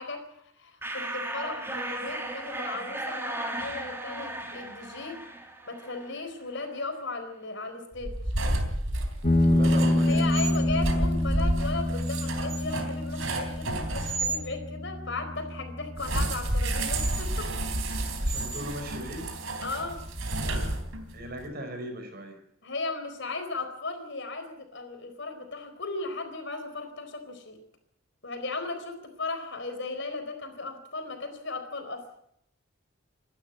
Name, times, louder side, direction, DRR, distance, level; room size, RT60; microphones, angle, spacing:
voice 1, 0.0-5.2 5.7-8.1 10.0-17.5 19.6-20.0 22.6-27.6 28.2-32.0, left 3 dB, 55° left, 6 dB, 4.3 m, -36 dB
sound 1, 0.8-6.3, right 1 dB, 10° right, 2.6 m, -36 dB
sound 2, 8.0-14.4 16.0-21.2, right 1 dB, 70° right, 3.7 m, -31 dB
sound 3, 9.2-18.3, left 1 dB, 30° left, 1.9 m, -28 dB
voice 2, 9.4-10.2 18.2-19.3 21.1-22.4, equal, 45° right, 6 dB, 4.9 m, -37 dB
27.5 x 12.5 x 8.3 m, 0.73 s
head